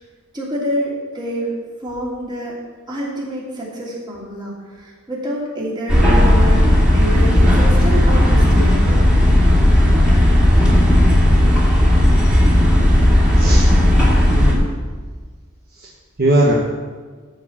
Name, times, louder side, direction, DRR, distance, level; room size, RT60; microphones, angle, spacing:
voice 1, 0.3-2.6 2.9-9.0, right 1 dB, 20° right, -5 dB, 2.9 m, -27 dB
sound 1, 5.9-14.6, left 1 dB, 5° right, 2.4 m, -13 dB
voice 2, 13.4-13.7 14.3-14.6 15.8-15.9 16.2-16.5, right 1 dB, 45° right, -3 dB, 1.1 m, -18 dB
13.5 x 4.9 x 7.2 m, 1.4 s
head